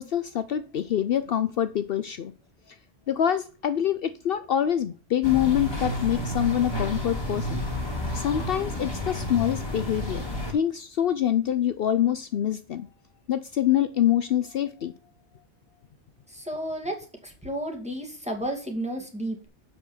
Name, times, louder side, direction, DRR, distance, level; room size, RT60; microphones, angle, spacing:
voice 1, 0.0-2.3 2.7-2.8 3.1-7.6 8.1-12.9 13.3-14.9, left 10 dB, 65° left, 12 dB, 0.8 m, -25 dB
sound 1, 5.2-10.5, left 1 dB, 25° left, 2.6 m, -31 dB
voice 2, 16.3-17.0 17.2-19.5, right 1 dB, 5° right, 2 dB, 2.3 m, -32 dB
7.7 x 6.2 x 7.2 m, 0.36 s
omnidirectional pair, 1.1 m